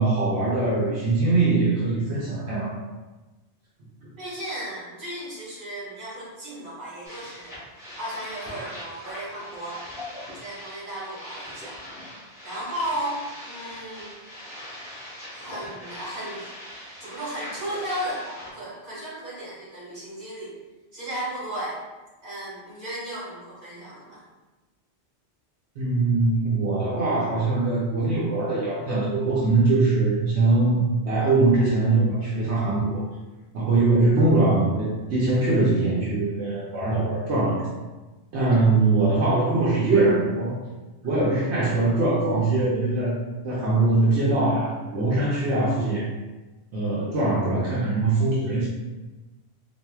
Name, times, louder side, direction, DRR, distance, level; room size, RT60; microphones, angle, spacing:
voice 1, 0.0-2.7 25.8-33.0 33.5-37.6 38.3-40.5 41.0-43.2 43.4-46.0 46.7-48.7, right 3 dB, 80° right, -7 dB, 1.0 m, -22 dB
voice 2, 4.2-7.5 8.0-9.8 10.4-11.8 12.4-14.1 15.3-18.2 18.5-20.5 20.9-21.8 22.2-24.2 38.3-38.7, right 1 dB, 45° right, -8 dB, 1.6 m, -35 dB
sound 1, 7.0-18.5, left 1 dB, 5° right, 1.0 m, -41 dB
4.2 x 2.6 x 2.3 m, 1.2 s
omnidirectional pair, 1.1 m